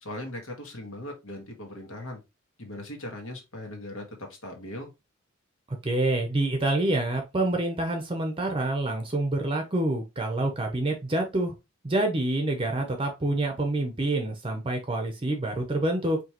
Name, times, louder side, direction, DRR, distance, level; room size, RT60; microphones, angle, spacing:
voice 1, 0.0-2.2 2.6-4.9, left 1 dB, 75° left, 2 dB, 1.7 m, -39 dB
voice 2, 5.8-11.5 11.8-16.2, right 2 dB, 25° right, 4 dB, 0.7 m, -27 dB
5.0 x 3.2 x 3.0 m, 0.24 s
head